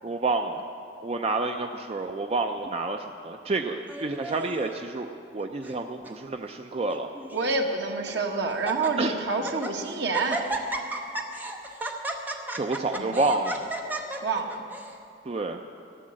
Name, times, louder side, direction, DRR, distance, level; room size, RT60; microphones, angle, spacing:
voice 1, 0.0-0.7 1.0-5.1 5.3-7.1 9.0-9.2 12.5-13.7 15.3-15.6, right 3 dB, 35° right, 5 dB, 0.4 m, -29 dB
Laughter, 3.9-4.7 5.4-5.8 6.0-6.1 6.9-7.5 8.1-8.2 8.5-8.9 9.3-9.7 10.1-14.9, right 1 dB, 10° right, 0.8 m, -34 dB
voice 2, 7.3-10.4 13.0-13.1 14.2-14.6, right 3 dB, 70° right, 2 dB, 1.4 m, -28 dB
14.0 x 10.5 x 7.6 m, 2.5 s
head